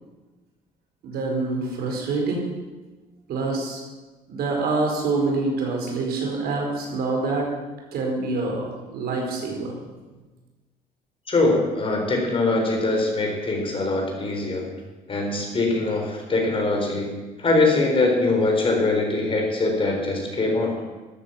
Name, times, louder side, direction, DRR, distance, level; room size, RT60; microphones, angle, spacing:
voice 1, 1.0-2.5 3.3-3.8 4.3-7.5 7.9-9.8, right 3 dB, 70° right, 0 dB, 4.5 m, -26 dB
voice 2, 11.3-14.7 15.1-17.1 17.4-20.7, left 2 dB, 30° left, 1 dB, 4.2 m, -22 dB
13.0 x 9.7 x 7.3 m, 1.2 s
cardioid pair, 110°, 17 cm